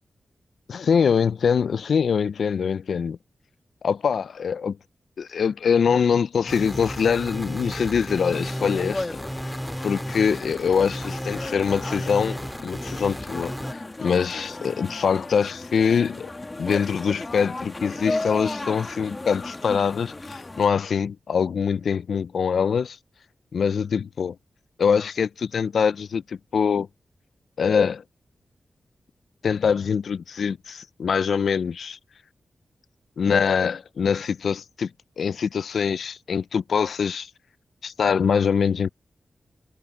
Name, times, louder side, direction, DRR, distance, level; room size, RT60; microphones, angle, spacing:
voice 1, 0.7-3.2 3.8-4.8 5.2-9.2 9.8-16.3 16.6-23.0 23.5-24.4 24.8-26.9 27.6-28.0 29.4-32.0 33.2-34.9 35.2-37.3 37.8-38.9, left 6 dB, 75° left, 0.4 m, -23 dB
sound 1, 6.5-13.7, equal, ahead, 2.0 m, -33 dB
sound 2, 8.3-20.7, left 2 dB, 20° left, 1.8 m, -35 dB
wide cardioid pair, 170°, 0 cm